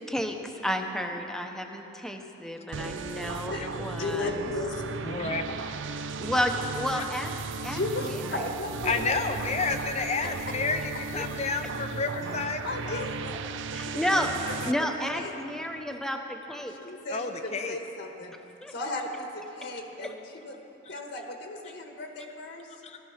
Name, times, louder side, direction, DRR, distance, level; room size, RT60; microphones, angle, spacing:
voice 1, 0.1-4.5 6.2-7.3 7.6-7.8 11.1-11.3 13.7-14.3 14.6-16.7 18.6-18.7 20.0-20.1, equal, 5° left, 3 dB, 0.9 m, -31 dB
sound 1, 2.7-14.7, right 4 dB, 65° right, 0.5 m, -36 dB
voice 2, 3.5-4.8 7.6-9.2 10.2-10.3 12.6-15.3 16.6-18.4 18.7-20.5 20.9-22.7, left 2 dB, 60° left, 3 dB, 1.4 m, -36 dB
voice 3, 5.0-5.6 6.9-7.0 8.8-10.8 11.1-13.1 17.1-17.8 22.8-23.0, left 4 dB, 35° left, 6 dB, 0.6 m, -30 dB
15.5 x 13.5 x 5.8 m, 3.0 s
head